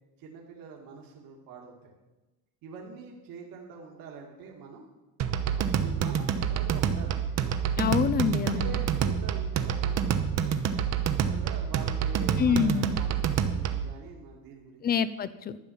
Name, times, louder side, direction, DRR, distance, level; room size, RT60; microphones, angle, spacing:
voice 1, 0.2-1.9 2.6-4.8 5.6-7.2 8.2-8.3 8.5-10.1 11.1-13.1 13.4-14.9, right 5 dB, 60° right, -1 dB, 2.2 m, -45 dB
sound 1, 5.2-13.9, right 8 dB, 40° right, 0.9 m, -28 dB
voice 2, 7.8-8.8 12.4-13.0 14.8-15.6, left 7 dB, 25° left, 16 dB, 0.4 m, -26 dB
12.0 x 5.8 x 9.1 m, 1.1 s
cardioid pair, 140°, 39 cm